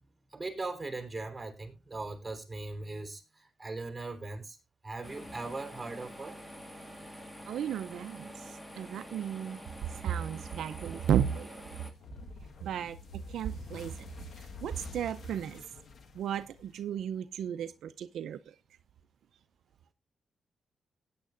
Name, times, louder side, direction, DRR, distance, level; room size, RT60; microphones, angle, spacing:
voice 1, 0.3-4.6 4.8-6.4, right 3 dB, 15° right, 3.8 m, -39 dB
sound 1, 5.0-11.9, equal, 10° left, 2.0 m, -47 dB
voice 2, 7.5-9.6 10.0-11.6 12.6-13.9 14.4-15.6 16.1-18.4, right 9 dB, 85° right, 0.5 m, -34 dB
sound 2, 12.0-17.1, left 5 dB, 60° left, 1.5 m, -48 dB
17.0 x 9.5 x 2.5 m
cardioid pair, 75°, 0 cm